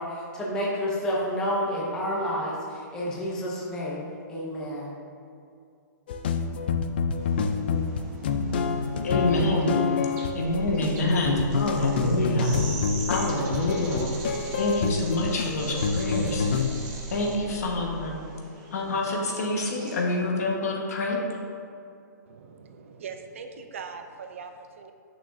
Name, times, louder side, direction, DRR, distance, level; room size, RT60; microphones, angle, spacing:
voice 1, 0.0-4.9, equal, 5° left, -5 dB, 0.7 m, -30 dB
sound 1, 6.1-16.7, left 5 dB, 35° left, 0.3 m, -27 dB
sound 2, 7.2-20.2, right 3 dB, 20° right, 1.0 m, -43 dB
voice 2, 9.0-9.7 10.3-12.5 13.1-14.1 14.6-16.5 17.1-18.2 18.7-21.2, left 2 dB, 55° left, 0 dB, 1.3 m, -27 dB
sound 3, 10.4-17.9, right 4 dB, 85° right, 1.6 m, -41 dB
voice 3, 22.3-24.9, right 5 dB, 45° right, 6 dB, 0.4 m, -41 dB
8.5 x 6.4 x 2.6 m, 2.5 s
hypercardioid pair, 175°, 10 cm